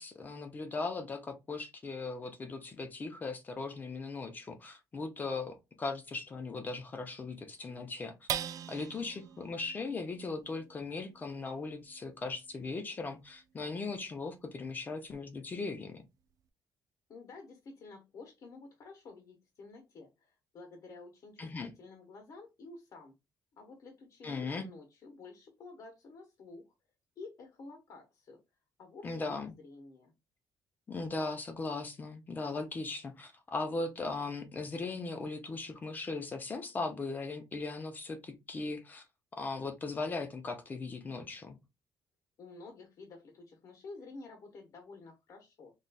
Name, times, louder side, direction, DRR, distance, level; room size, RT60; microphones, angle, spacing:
voice 1, 0.0-8.1 8.7-16.0 21.4-21.7 24.2-24.7 29.0-29.5 30.9-39.0 39.3-41.6, left 3 dB, 25° left, 0.6 m, -38 dB
sound 1, 8.3-15.0 15.5-15.6 16.0-16.5, right 9 dB, 50° right, 0.4 m, -44 dB
voice 2, 17.1-23.1 23.5-26.7 27.2-28.4 28.8-30.1 42.4-45.7, left 3 dB, 50° left, 1.0 m, -51 dB
4.0 x 3.1 x 2.2 m
cardioid pair, 160°, 8 cm